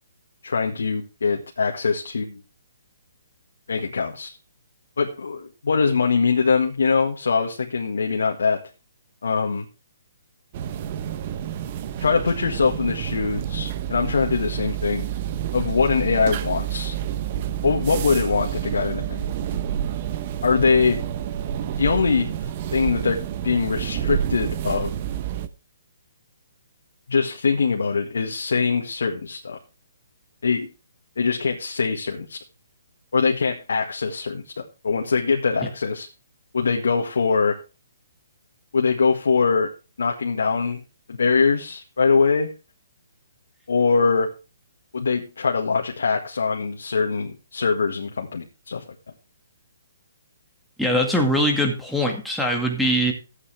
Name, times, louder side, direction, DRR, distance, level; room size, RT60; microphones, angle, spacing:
voice 1, 0.4-2.4 3.7-4.4 5.0-8.6 9.2-9.6 12.0-15.1 15.5-16.9 17.6-19.3 20.4-21.0 21.8-22.3 22.7-24.9 27.1-29.6 30.4-30.7 31.2-32.4 33.1-36.1 36.5-37.6 38.7-39.7 40.0-40.8 41.1-42.5 43.7-44.3 44.9-48.8, left 5 dB, 85° left, 2 dB, 1.8 m, -22 dB
sound 1, 10.5-25.5, right 10 dB, 35° right, 0.8 m, -29 dB
voice 2, 50.8-53.1, equal, ahead, -1 dB, 2.1 m, -22 dB
14.0 x 8.4 x 3.5 m, 0.31 s
hypercardioid pair, 160°, 0 cm